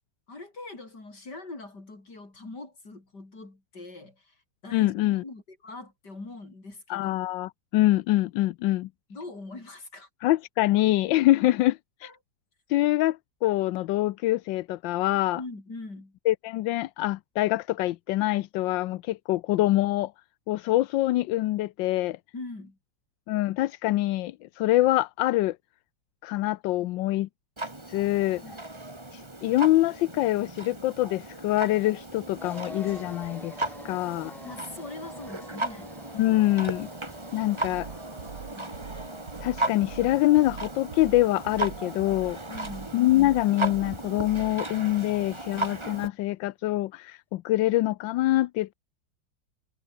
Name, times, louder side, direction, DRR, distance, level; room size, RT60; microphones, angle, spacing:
voice 1, 0.3-4.4 4.6-7.1 9.1-10.1 12.0-12.1 15.3-16.2 22.3-22.8 28.4-28.6 34.4-35.9 38.5-38.7 42.5-43.0, left 3 dB, 65° left, 6.1 m, -42 dB
voice 2, 4.7-5.2 6.9-8.9 10.2-12.1 12.7-15.4 16.3-20.1 20.5-22.2 23.3-25.6 26.2-27.3 27.9-28.4 29.1-34.3 36.1-36.9 37.3-37.9 39.4-42.4 42.9-48.7, left 16 dB, 85° left, 1.3 m, -25 dB
Clock, 27.6-46.1, right 2 dB, 15° right, 2.3 m, -36 dB
sound 1, 32.4-44.0, equal, ahead, 0.4 m, -48 dB
sound 2, 37.5-44.6, right 7 dB, 65° right, 2.2 m, -44 dB
omnidirectional pair, 2.0 m